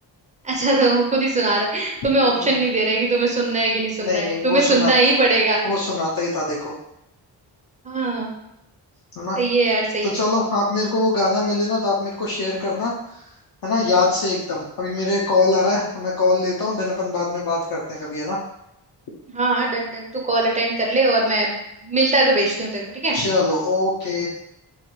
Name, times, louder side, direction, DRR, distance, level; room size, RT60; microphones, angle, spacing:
voice 1, 0.4-5.7 7.8-8.3 9.4-10.2 19.3-23.2, right 2 dB, 15° right, -1 dB, 0.5 m, -20 dB
voice 2, 2.2-2.6 4.0-4.9 5.6-6.7 9.2-9.4 10.0-13.2 13.6-18.4 23.1-24.3, left 3 dB, 55° left, -4 dB, 0.5 m, -22 dB
3.1 x 2.2 x 3.0 m, 0.83 s
wide cardioid pair, 155°, 44 cm